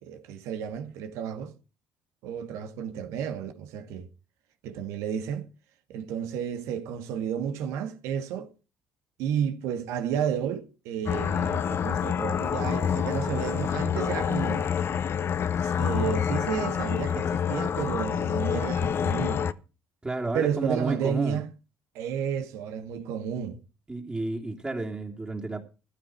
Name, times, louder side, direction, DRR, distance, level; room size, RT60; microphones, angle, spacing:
voice 1, 0.0-1.5 2.2-4.1 4.6-5.5 5.9-8.5 9.2-14.7 15.6-19.4 20.3-21.5 22.0-23.6, right 8 dB, 75° right, 2.0 m, -32 dB
sound 1, 11.1-19.5, left 8 dB, 50° left, 1.0 m, -27 dB
voice 2, 20.0-21.4 23.9-25.6, right 2 dB, 20° right, 3.1 m, -31 dB
15.0 x 13.0 x 4.6 m
hypercardioid pair, 60°, 5 cm